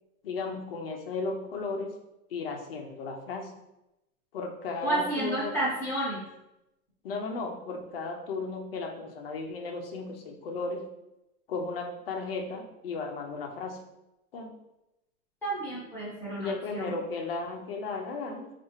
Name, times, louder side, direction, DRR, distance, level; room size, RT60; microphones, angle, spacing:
voice 1, 0.2-1.9 2.3-3.5 4.3-5.5 7.0-10.9 11.5-13.8 14.3-14.5 16.4-18.5, left 3 dB, 40° left, 2 dB, 0.5 m, -35 dB
voice 2, 4.8-6.2 15.4-16.9, right 2 dB, 5° left, -10 dB, 0.9 m, -31 dB
4.4 x 2.4 x 3.0 m, 0.91 s
supercardioid pair, 160°, 46 cm